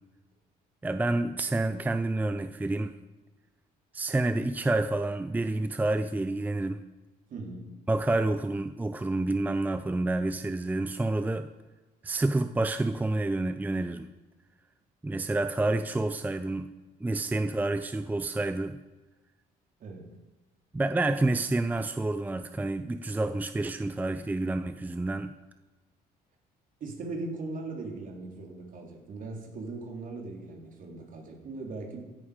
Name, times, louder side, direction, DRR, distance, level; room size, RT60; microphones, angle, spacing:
voice 1, 0.8-2.9 3.9-6.8 7.9-11.5 12.0-14.1 15.0-16.7 17.0-18.8 20.7-25.3, right 2 dB, 10° right, 10 dB, 0.6 m, -28 dB
voice 2, 7.3-7.7 19.8-20.1 26.8-32.1, right 3 dB, 50° right, 1 dB, 3.6 m, -39 dB
16.0 x 11.0 x 5.2 m, 1.2 s
cardioid pair, 110°, 17 cm